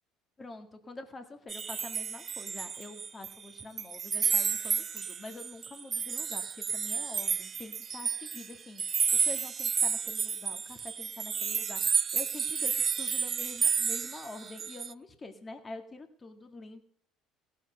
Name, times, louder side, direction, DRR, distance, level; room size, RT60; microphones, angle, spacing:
voice 1, 0.4-16.8, left 2 dB, 30° left, 7 dB, 1.8 m, -46 dB
sound 1, 1.5-3.3 3.6-14.9, right 6 dB, 40° right, 0.4 m, -31 dB
16.5 x 7.5 x 5.7 m, 0.65 s
hypercardioid pair, 75°, 0 cm